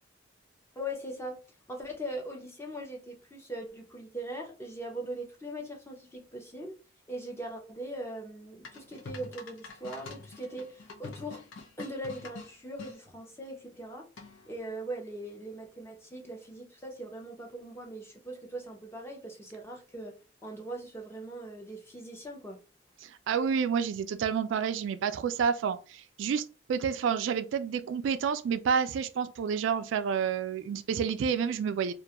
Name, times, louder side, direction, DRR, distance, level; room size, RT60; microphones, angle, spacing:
voice 1, 0.8-1.4 1.7-6.8 7.1-11.4 11.8-14.1 14.5-20.1 20.4-22.6, right 1 dB, 15° left, 0.5 m, -40 dB
sound 1, 8.6-12.9 14.2-14.6, left 3 dB, 80° left, 0.6 m, -46 dB
voice 2, 23.0-26.4 26.7-31.9, right 7 dB, 75° right, 0.3 m, -29 dB
2.4 x 2.2 x 2.8 m
head